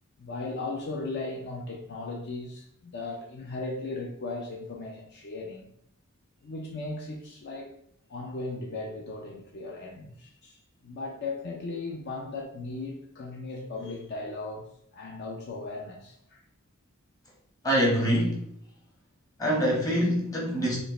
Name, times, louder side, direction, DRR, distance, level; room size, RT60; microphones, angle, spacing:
voice 1, 0.2-5.7 6.4-7.7 8.1-10.6 10.8-14.7 14.9-16.4, left 3 dB, 55° left, 0.5 m, -37 dB
voice 2, 17.6-18.4 19.4-20.8, equal, 15° left, 1.1 m, -24 dB
5.0 x 2.1 x 3.1 m
head